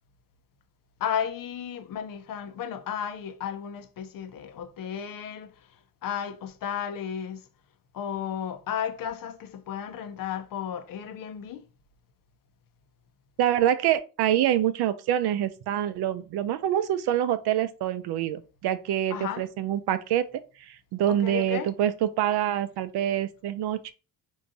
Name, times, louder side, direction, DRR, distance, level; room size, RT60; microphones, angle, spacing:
voice 1, 1.0-5.5 6.0-7.4 7.9-11.7 19.1-19.5 21.1-21.7, left 8 dB, 55° left, 0.6 m, -33 dB
voice 2, 13.4-20.3 20.7-23.9, right 11 dB, 70° right, 0.5 m, -26 dB
4.6 x 2.7 x 2.6 m
cardioid pair, 145°, 40 cm